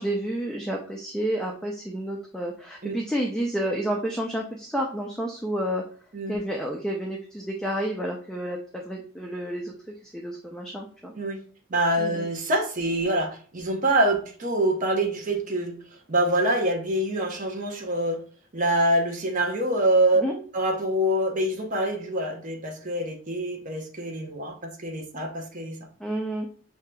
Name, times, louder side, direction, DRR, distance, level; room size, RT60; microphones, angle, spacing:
voice 1, 0.0-5.8 6.3-9.7 10.0-11.1 12.0-12.3 20.2-20.4 26.0-26.5, right 1 dB, 5° left, 0 dB, 0.4 m, -30 dB
voice 2, 11.7-15.8 16.1-18.2 18.5-20.2 20.5-25.8, right 1 dB, 40° right, 2 dB, 0.7 m, -25 dB
6.2 x 2.8 x 2.2 m, 0.44 s
head